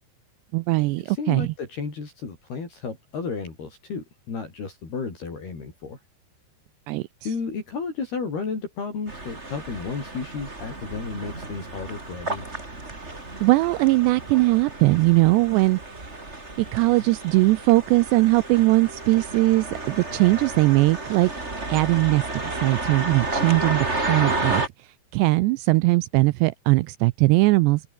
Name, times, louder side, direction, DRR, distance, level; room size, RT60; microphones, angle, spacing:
voice 1, 0.5-1.5 6.9-7.0 13.4-15.8 16.6-21.3 21.7-24.6 25.1-27.8, right 21 dB, 85° right, 2.5 m, -20 dB
voice 2, 1.0-6.0 7.2-12.6, left 5 dB, 55° left, 8.2 m, -33 dB
sound 1, 9.1-24.7, right 2 dB, 15° right, 3.8 m, -32 dB
open air
omnidirectional pair, 5.4 m